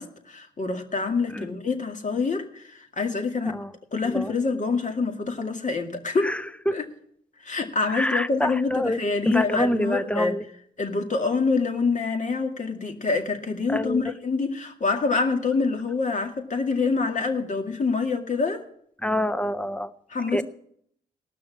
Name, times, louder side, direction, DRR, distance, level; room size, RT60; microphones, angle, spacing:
voice 1, 0.0-3.6 3.9-6.4 6.7-6.8 7.4-10.4 10.8-18.6 20.1-20.4, left 4 dB, 45° left, 4 dB, 2.1 m, -26 dB
voice 2, 6.2-6.7 7.9-9.0 9.3-10.4 13.7-14.1 19.0-19.9 20.3-20.4, equal, 5° left, 11 dB, 0.7 m, -26 dB
18.0 x 6.2 x 7.4 m, 0.69 s
supercardioid pair, 50°, 18 cm